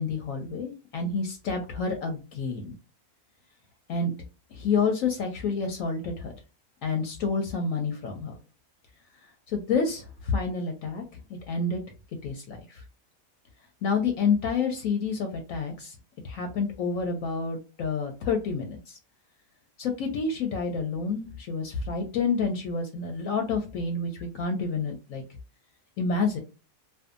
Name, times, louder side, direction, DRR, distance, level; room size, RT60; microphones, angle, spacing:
voice 1, 0.0-2.7 3.9-4.1 4.5-6.3 6.8-8.4 9.5-11.0 11.5-11.8 12.2-12.8 13.8-15.9 16.2-19.0 19.8-25.2 26.0-26.4, left 4 dB, 70° left, 4 dB, 0.9 m, -29 dB
2.6 x 2.2 x 2.4 m, 0.32 s
omnidirectional pair, 1.6 m